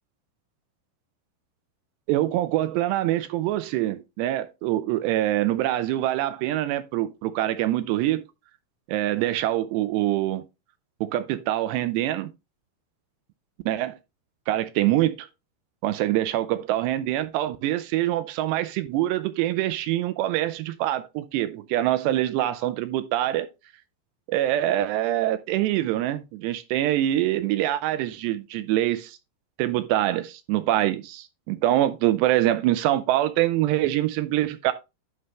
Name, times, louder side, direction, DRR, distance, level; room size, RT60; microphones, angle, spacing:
voice 1, 2.1-8.2 8.9-10.4 11.0-12.3 13.7-14.0 14.5-15.3 15.8-23.5 24.3-29.2 29.6-34.7, right 14 dB, 85° right, 2.6 m, -24 dB
11.5 x 5.5 x 3.1 m
omnidirectional pair, 5.3 m